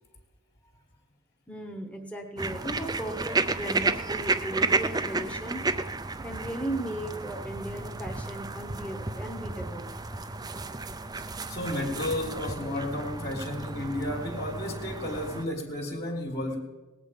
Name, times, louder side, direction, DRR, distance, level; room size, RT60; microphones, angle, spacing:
voice 1, 1.5-5.9 6.2-9.9, right 1 dB, 5° left, 2 dB, 1.0 m, -36 dB
sound 1, 2.4-15.5, right 3 dB, 15° right, 0.4 m, -32 dB
voice 2, 11.5-16.6, left 1 dB, 45° left, 0 dB, 1.5 m, -32 dB
19.0 x 8.2 x 5.2 m, 1.2 s
head